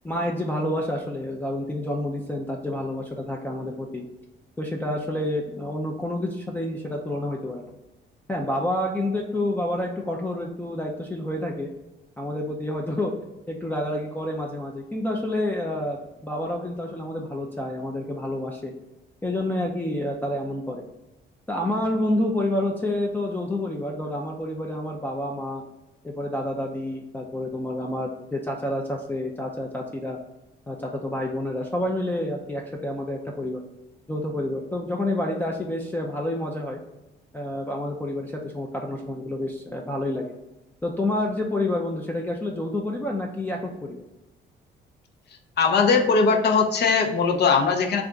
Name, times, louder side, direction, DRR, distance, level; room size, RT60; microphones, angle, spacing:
voice 1, 0.0-4.0 4.6-7.7 8.3-11.7 12.2-13.1 13.5-18.7 19.2-20.8 21.5-25.6 26.0-30.2 30.7-33.6 34.1-36.8 37.3-40.3 40.8-44.0, left 1 dB, 10° left, -1 dB, 0.4 m, -28 dB
voice 2, 45.6-48.0, left 5 dB, 55° left, 2 dB, 0.7 m, -20 dB
3.4 x 2.4 x 3.8 m, 1.0 s
cardioid pair, 90°, 20 cm